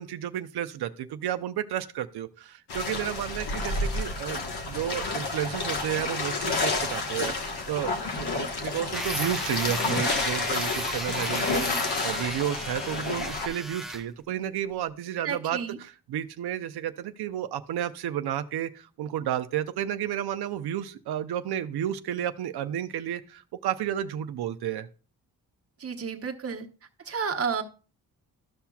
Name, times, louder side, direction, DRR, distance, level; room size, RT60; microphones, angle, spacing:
voice 1, 0.0-24.9, right 11 dB, 85° right, 10 dB, 0.6 m, -32 dB
sound 1, 2.7-13.5, left 3 dB, 85° left, 1.4 m, -30 dB
sound 2, 8.9-14.1, right 1 dB, ahead, 0.6 m, -36 dB
voice 2, 15.2-15.8 25.8-26.7 27.0-27.6, right 6 dB, 40° right, 4 dB, 1.1 m, -31 dB
13.0 x 5.7 x 2.3 m, 0.36 s
cardioid pair, 95°, 38 cm